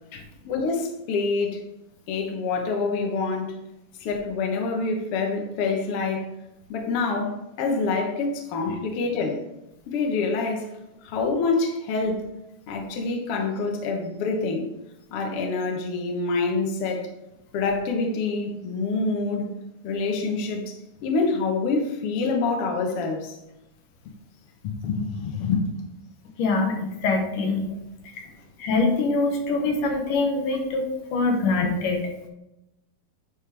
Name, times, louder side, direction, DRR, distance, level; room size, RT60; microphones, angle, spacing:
voice 1, 0.5-1.6 2.1-3.5 4.0-6.3 6.7-9.4 9.9-10.7 11.0-12.3 12.7-14.6 15.1-17.0 17.5-19.5 19.8-20.7 21.0-23.4 24.6-25.7, left 4 dB, 85° left, 1.2 m, -26 dB
voice 2, 26.4-27.7 28.6-32.1, left 3 dB, 65° left, 2.5 m, -24 dB
9.9 x 5.2 x 3.4 m
omnidirectional pair, 4.4 m